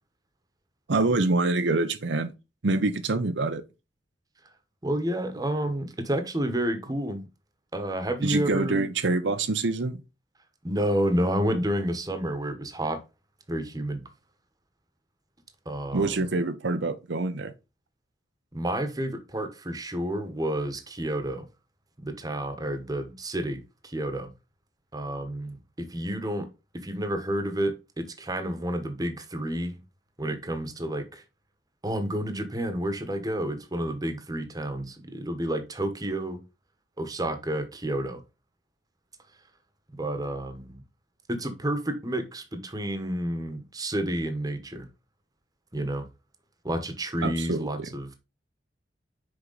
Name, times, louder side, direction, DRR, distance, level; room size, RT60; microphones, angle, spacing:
voice 1, 0.9-2.3 2.6-3.6 8.2-10.0 11.2-11.6 15.9-17.5 47.2-47.9, right 3 dB, 80° right, 0.7 m, -26 dB
voice 2, 4.8-7.3 7.7-8.9 10.6-13.0 13.5-14.0 15.6-16.2 18.5-21.5 22.0-24.3 24.9-26.5 26.8-29.8 30.2-31.2 31.8-36.4 37.0-38.2 40.0-40.8 41.3-44.9 45.7-46.1 46.6-48.1, right 1 dB, 20° right, 1.1 m, -30 dB
6.4 x 4.7 x 3.9 m
head